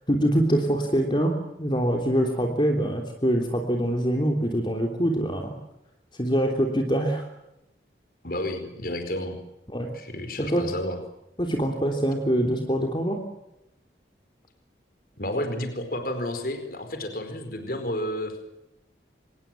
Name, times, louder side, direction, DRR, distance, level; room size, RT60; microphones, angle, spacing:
voice 1, 0.1-5.5 6.1-7.3 9.7-9.9 10.4-10.7 11.4-13.2, equal, 25° left, 2 dB, 3.3 m, -24 dB
voice 2, 8.2-9.4 9.9-11.0 15.2-18.4, left 1 dB, 50° left, 7 dB, 4.6 m, -31 dB
26.0 x 21.0 x 7.7 m, 0.88 s
head